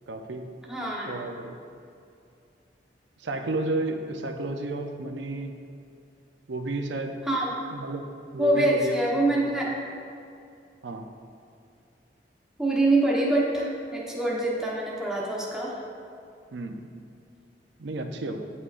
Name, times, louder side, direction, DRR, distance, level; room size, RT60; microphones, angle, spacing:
voice 1, 0.1-0.5 1.1-1.6 3.2-5.5 6.5-7.2 7.7-9.4 10.8-11.1 16.5-16.8 17.8-18.5, right 2 dB, 85° right, 5 dB, 0.5 m, -32 dB
voice 2, 0.7-1.1 7.3-7.5 8.4-9.8 12.6-15.7, right 1 dB, 5° right, -5 dB, 1.0 m, -25 dB
9.6 x 5.6 x 2.5 m, 2.5 s
head